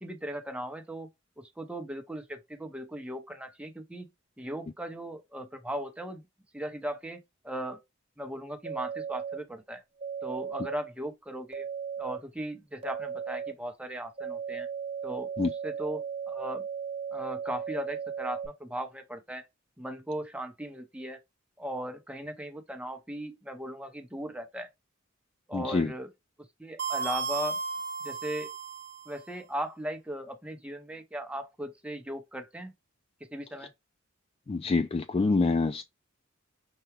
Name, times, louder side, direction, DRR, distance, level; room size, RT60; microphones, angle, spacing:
voice 1, 0.0-1.1 1.4-4.1 4.4-6.2 6.5-7.2 7.4-7.8 8.2-9.8 10.2-11.7 12.0-14.7 15.0-16.6 17.1-19.5 19.8-21.2 21.6-24.7 25.5-26.1 26.6-27.6 28.0-28.5 29.1-32.7 33.3-33.7, right 1 dB, 5° right, 0.8 m, -38 dB
sound 1, 8.6-9.4 10.0-10.7 11.5-12.2 12.8-13.5 14.2-18.5, right 7 dB, 30° right, 1.3 m, -36 dB
voice 2, 25.5-25.9 34.5-35.8, left 3 dB, 30° left, 0.3 m, -26 dB
sound 2, 26.8-29.2, right 4 dB, 50° right, 0.8 m, -34 dB
5.7 x 2.3 x 3.2 m
head